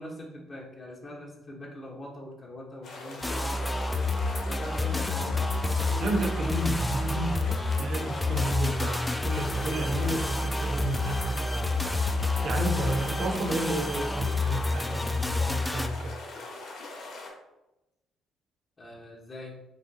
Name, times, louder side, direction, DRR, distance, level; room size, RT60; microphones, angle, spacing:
voice 1, 0.0-4.0 4.4-5.5 18.8-19.6, left 1 dB, 35° left, -3 dB, 1.2 m, -42 dB
sound 1, 2.8-17.3, left 2 dB, 60° left, 1.6 m, -42 dB
sound 2, 3.2-15.9, left 2 dB, 15° left, 0.5 m, -29 dB
voice 2, 6.0-7.4 7.8-11.8 12.4-16.2, right 2 dB, 55° right, 3 dB, 0.9 m, -32 dB
4.9 x 3.7 x 2.8 m, 0.90 s
hypercardioid pair, 45°, 0 cm